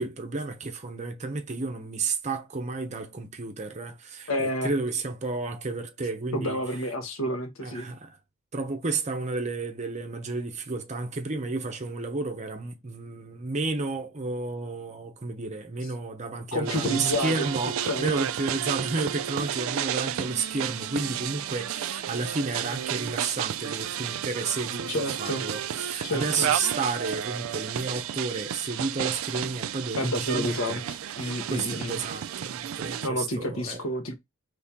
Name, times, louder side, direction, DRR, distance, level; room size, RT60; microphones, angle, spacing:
voice 1, 0.0-6.6 7.6-8.2 8.5-30.8 31.2-33.9, right 3 dB, 35° right, 0.8 m, -32 dB
voice 2, 4.3-4.7 6.3-7.9 16.5-17.5 17.8-18.1 24.9-25.4 26.0-26.5 29.9-30.8 31.2-32.0 33.0-34.1, left 1 dB, 75° left, 1.3 m, -29 dB
sound 1, 16.7-33.1, right 10 dB, 80° right, 0.3 m, -32 dB
4.3 x 3.3 x 3.5 m
head